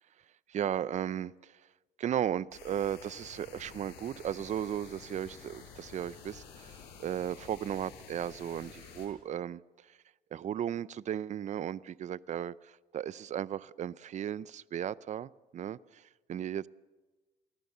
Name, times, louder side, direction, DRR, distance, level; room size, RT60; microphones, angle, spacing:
voice 1, 0.5-1.5 2.0-9.6 10.3-16.0 16.3-16.7, right 10 dB, 45° right, 19 dB, 0.6 m, -35 dB
sound 1, 2.5-9.1, left 6 dB, 90° left, 6.2 m, -51 dB
27.0 x 18.5 x 6.8 m, 1.2 s
cardioid pair, 110°, 17 cm